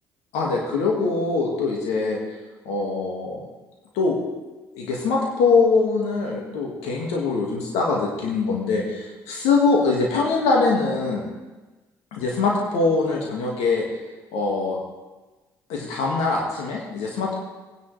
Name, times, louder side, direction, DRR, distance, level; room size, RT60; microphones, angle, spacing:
voice 1, 0.3-2.2 2.7-3.4 4.0-4.2 4.7-11.2 12.1-13.8 14.3-14.8 15.7-17.4, left 4 dB, 65° left, -1 dB, 2.0 m, -23 dB
18.0 x 10.0 x 3.4 m, 1.2 s
figure-of-eight pair, 45°, 12 cm